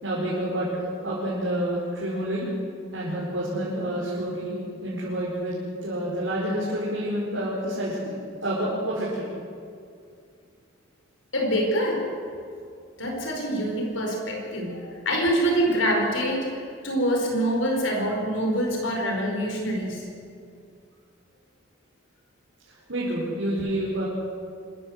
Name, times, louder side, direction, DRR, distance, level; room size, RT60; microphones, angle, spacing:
voice 1, 0.0-2.5 2.9-5.5 5.8-8.1 8.4-9.2 22.9-24.1, right 1 dB, 65° right, -6 dB, 5.1 m, -28 dB
voice 2, 11.3-12.1 13.0-16.5 16.8-20.1, equal, 75° left, 1 dB, 4.9 m, -25 dB
25.5 x 15.0 x 8.0 m, 2.3 s
head